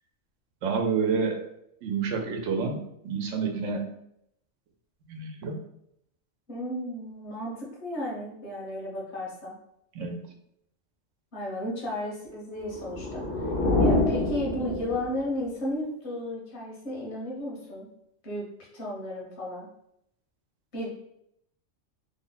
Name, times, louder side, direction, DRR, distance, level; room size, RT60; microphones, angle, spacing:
voice 1, 0.6-1.4 1.8-3.9 5.1-5.6 10.0-10.2, right 5 dB, 85° right, 4 dB, 1.0 m, -29 dB
voice 2, 6.5-9.5 11.3-13.5 13.8-17.9 18.2-18.5 18.7-19.7 20.7-20.9, left 1 dB, 65° left, -4 dB, 1.4 m, -34 dB
sound 1, 12.6-15.3, left 2 dB, 85° left, 1.1 m, -26 dB
3.2 x 2.1 x 3.9 m, 0.76 s
omnidirectional pair, 1.2 m